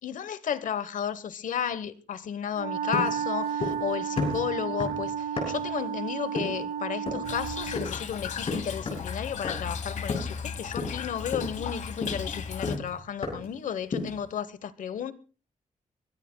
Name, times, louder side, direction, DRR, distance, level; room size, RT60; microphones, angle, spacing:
voice 1, 0.0-15.1, left 8 dB, 85° left, 1.1 m, -33 dB
Wind instrument woodwind instrument, 2.5-7.9, right 8 dB, 75° right, 0.7 m, -32 dB
sound 1, 2.9-3.9 4.2-5.8 6.4-6.7 7.1-7.3 7.8-8.1 8.5-9.1 9.4-9.8 10.1-10.5 10.8-11.1 11.3-13.6 13.9-14.3, left 3 dB, 50° left, 7.0 m, -33 dB
Toilet flush / Trickle dribble, 7.2-12.8, left 6 dB, 65° left, 1.2 m, -36 dB
24.0 x 22.0 x 2.3 m
wide cardioid pair, 170°, 13 cm